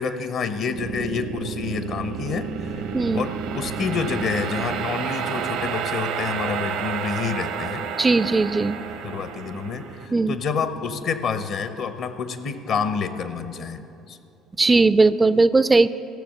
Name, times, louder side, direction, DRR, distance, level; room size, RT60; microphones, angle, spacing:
voice 1, 0.0-2.9 3.1-7.8 9.0-13.8 14.1-14.2, left 5 dB, 60° left, 11 dB, 0.9 m, -28 dB
sound 1, 0.7-11.9, right 7 dB, 70° right, 0.7 m, -31 dB
voice 2, 2.9-3.3 8.0-8.8 10.1-10.4 14.6-15.9, right 3 dB, 20° right, 15 dB, 0.3 m, -18 dB
14.0 x 6.6 x 7.6 m, 2.7 s
hypercardioid pair, 65°, 0 cm